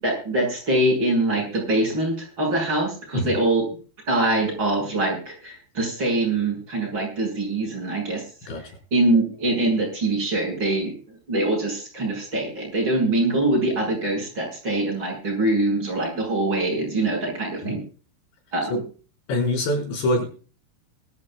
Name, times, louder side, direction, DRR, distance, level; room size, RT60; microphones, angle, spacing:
voice 1, 0.0-3.6 4.1-8.2 8.9-17.8 18.5-18.8, right 2 dB, 25° right, 0 dB, 7.1 m, -23 dB
voice 2, 19.3-20.3, left 1 dB, 85° left, 1 dB, 7.5 m, -24 dB
22.5 x 13.5 x 2.4 m, 0.38 s
omnidirectional pair, 4.9 m